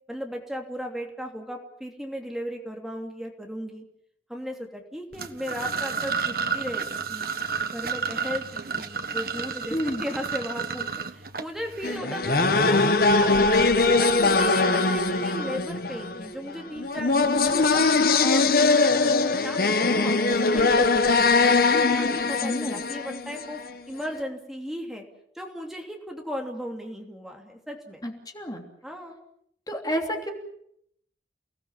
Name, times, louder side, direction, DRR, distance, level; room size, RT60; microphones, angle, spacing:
voice 1, 0.1-3.8 4.3-7.3 7.7-13.6 14.0-17.9 18.2-21.5 21.9-23.6 23.9-25.0 25.3-28.0 28.8-29.2, equal, ahead, 1 dB, 3.0 m, -36 dB
sound 1, 5.1-12.0, right 5 dB, 55° right, 1.5 m, -31 dB
voice 2, 9.7-10.0 22.4-22.8 28.0-28.6 29.7-30.3, equal, 20° left, 3 dB, 3.0 m, -30 dB
sound 2, 11.8-23.7, left 3 dB, 55° left, 1.4 m, -21 dB
30.0 x 18.5 x 7.5 m, 0.71 s
head